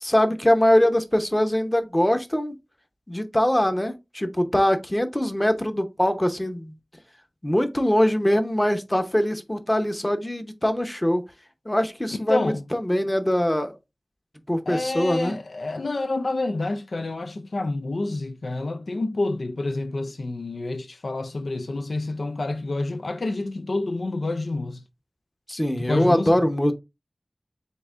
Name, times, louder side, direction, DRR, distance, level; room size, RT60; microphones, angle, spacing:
voice 1, 0.0-2.5 3.1-6.7 7.4-11.2 11.6-13.8 14.5-15.4 25.5-26.7, left 1 dB, 20° left, 0.8 m, -22 dB
voice 2, 12.3-12.6 14.7-24.8 25.8-26.4, left 2 dB, 80° left, 0.4 m, -28 dB
7.8 x 2.6 x 2.4 m
wide cardioid pair, 60°, 0 cm